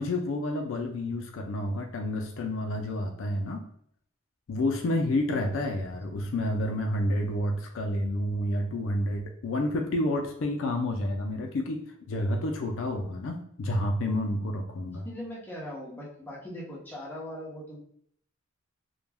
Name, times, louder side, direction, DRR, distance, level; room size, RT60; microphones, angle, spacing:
voice 1, 0.0-3.6 4.5-15.1, left 1 dB, 65° left, 3 dB, 0.4 m, -29 dB
voice 2, 14.9-17.8, equal, 10° left, -6 dB, 0.7 m, -40 dB
2.2 x 2.1 x 3.3 m, 0.67 s
head